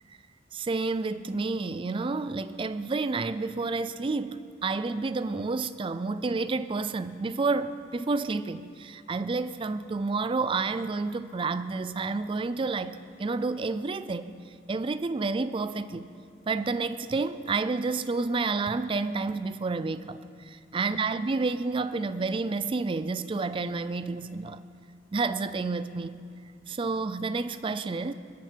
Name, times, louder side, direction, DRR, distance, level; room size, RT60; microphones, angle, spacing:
voice 1, 0.5-14.4 14.7-16.1 16.5-20.2 20.5-24.6 25.1-26.1 26.7-28.1, right 3 dB, 30° right, 13 dB, 0.4 m, -30 dB
21.0 x 9.1 x 4.5 m, 2.2 s
head